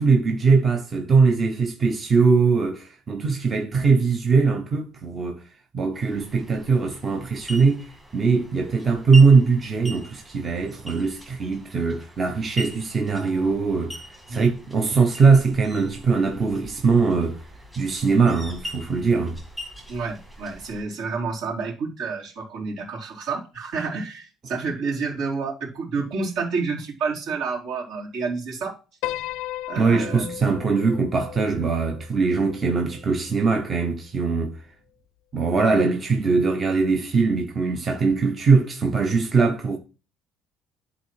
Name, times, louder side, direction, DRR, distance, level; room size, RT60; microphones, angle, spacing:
voice 1, 0.0-5.4 5.7-14.0 14.3-17.4 17.8-19.4 29.7-34.7 35.3-39.8, right 4 dB, 25° right, 0.8 m, -21 dB
sound 1, 5.9-20.8, equal, 10° right, 1.8 m, -41 dB
voice 2, 19.9-28.8 29.7-30.3, right 4 dB, 65° right, 3.6 m, -29 dB
Piano, 29.0-33.4, left 15 dB, 85° left, 0.4 m, -36 dB
11.5 x 4.1 x 4.7 m
cardioid pair, 165°, 0 cm